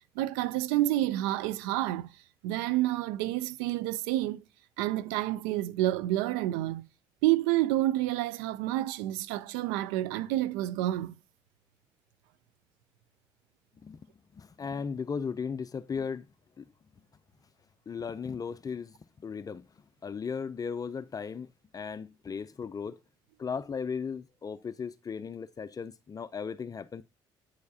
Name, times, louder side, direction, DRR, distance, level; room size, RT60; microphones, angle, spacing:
voice 1, 0.2-2.1 2.4-4.4 4.8-6.8 7.2-11.1, right 15 dB, 90° right, 0.4 m, -29 dB
voice 2, 14.3-16.3 16.6-16.7 17.9-19.7 20.0-21.5 21.7-23.0 23.4-27.0, left 6 dB, 35° left, 0.5 m, -36 dB
9.4 x 4.7 x 2.8 m
supercardioid pair, 60°, 11 cm